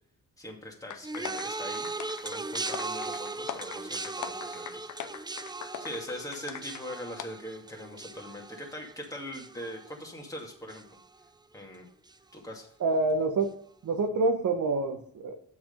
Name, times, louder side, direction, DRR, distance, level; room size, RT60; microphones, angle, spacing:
voice 1, 0.4-1.9 2.2-4.9 5.8-10.8 11.5-11.9 12.3-12.7, left 1 dB, 10° left, -1 dB, 2.2 m, -41 dB
sound 1, 0.9-6.8 7.2-7.3, left 9 dB, 70° left, 0.8 m, -41 dB
sound 2, 1.0-10.4 10.7-11.2 12.1-12.2, right 3 dB, 15° right, 0.5 m, -38 dB
voice 2, 12.8-13.5 13.8-15.4, right 3 dB, 70° right, 5 dB, 1.3 m, -27 dB
8.0 x 6.1 x 5.3 m, 0.62 s
cardioid pair, 90°, 31 cm